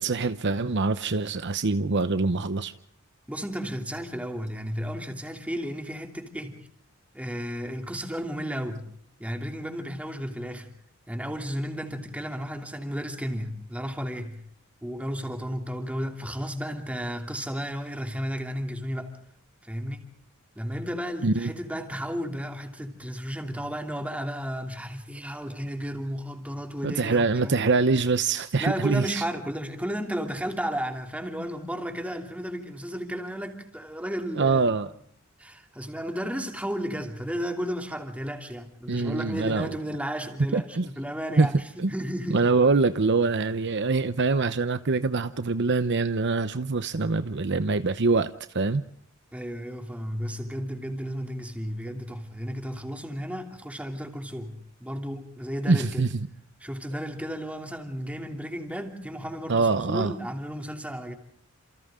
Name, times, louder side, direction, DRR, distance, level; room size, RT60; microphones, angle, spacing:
voice 1, 0.0-2.7 21.2-21.5 26.8-29.2 34.4-34.9 38.9-39.7 40.5-40.9 41.4-41.5 41.8-41.9 42.3-48.8 55.7-56.2 59.5-60.1, right 3 dB, 60° right, 0.9 m, -24 dB
voice 2, 3.3-6.6 7.1-8.9 9.2-10.7 11.1-14.4 14.8-19.2 19.6-20.1 20.6-27.8 28.6-34.7 35.4-42.4 49.3-56.0 56.6-61.2, equal, 5° right, 3.0 m, -33 dB
29.5 x 28.0 x 3.8 m
head